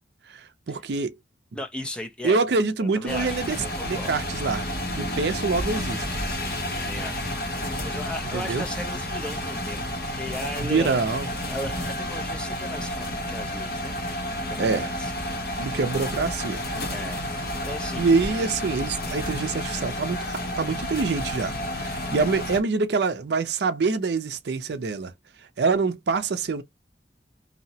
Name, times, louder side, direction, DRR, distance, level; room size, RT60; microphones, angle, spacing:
voice 1, 0.3-1.1 2.2-3.6 3.8-4.6 4.9-6.0 8.3-8.6 10.6-11.3 14.6-14.9 15.6-16.7 18.0-25.1 25.6-26.6, right 4 dB, 65° right, 0.4 m, -25 dB
voice 2, 1.5-2.4 2.8-4.2 6.3-9.8 10.1-11.0 11.5-15.4 16.8-18.1 21.1-21.2, left 1 dB, 5° left, 0.4 m, -37 dB
sound 1, 3.1-22.6, left 1 dB, 55° left, 0.9 m, -31 dB
2.7 x 2.1 x 2.7 m
head